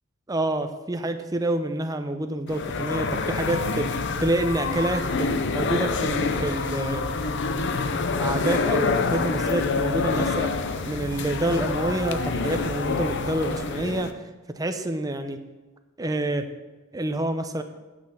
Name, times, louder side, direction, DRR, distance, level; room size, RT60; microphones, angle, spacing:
voice 1, 0.3-3.9 4.2-5.3 5.5-7.1 7.5-10.5 10.9-14.1 14.5-15.4 16.0-16.5 16.9-17.6, right 1 dB, 15° right, 7 dB, 0.6 m, -27 dB
sound 1, 2.5-14.1, left 4 dB, 55° left, 0.6 m, -27 dB
8.9 x 6.4 x 5.7 m, 1.2 s
head